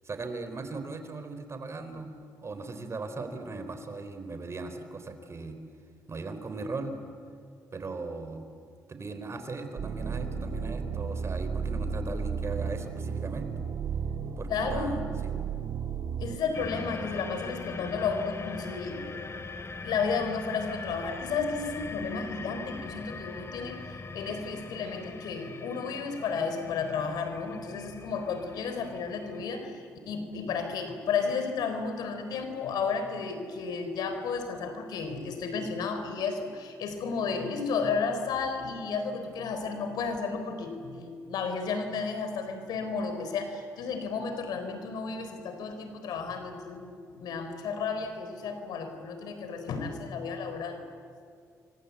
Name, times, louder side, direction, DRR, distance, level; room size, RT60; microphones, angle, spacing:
voice 1, 0.0-2.1 2.4-5.6 6.1-6.9 7.7-8.5 8.9-13.6 14.4-15.3, right 3 dB, 40° right, 8 dB, 3.9 m, -38 dB
sound 1, 9.8-16.4, right 6 dB, 65° right, 1.7 m, -33 dB
voice 2, 14.5-15.1 16.2-19.0 19.8-50.8, left 5 dB, 85° left, 7 dB, 3.9 m, -33 dB
sound 2, 16.5-29.4, left 4 dB, 40° left, 2.6 m, -41 dB
28.0 x 25.0 x 8.4 m, 2.3 s
cardioid pair, 70°, 7 cm